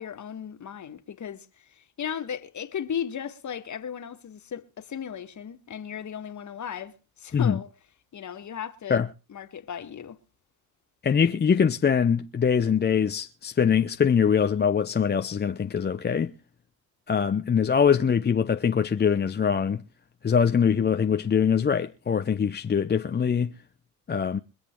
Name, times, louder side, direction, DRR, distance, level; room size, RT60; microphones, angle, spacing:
voice 1, 0.0-7.7 8.1-9.0 9.3-10.2, left 8 dB, 40° left, 2.0 m, -36 dB
voice 2, 11.0-16.3 17.1-19.8 20.2-23.5 24.1-24.4, left 7 dB, 20° left, 0.8 m, -23 dB
24.5 x 8.2 x 4.6 m
figure-of-eight pair, 55°, 45 cm